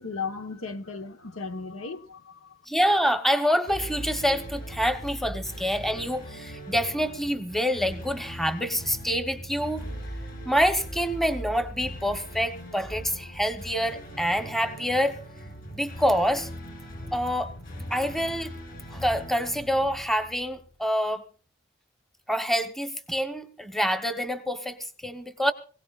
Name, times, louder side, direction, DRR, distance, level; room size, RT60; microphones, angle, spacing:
voice 1, 0.0-2.6, left 4 dB, 80° left, 1.2 m, -36 dB
voice 2, 2.7-9.8 10.4-15.2 15.7-16.5 17.1-17.5 17.9-18.5 18.9-21.3 22.3-25.5, equal, ahead, 1.0 m, -26 dB
sound 1, 3.6-20.7, equal, 45° left, 7.4 m, -40 dB
23.5 x 17.0 x 2.4 m
head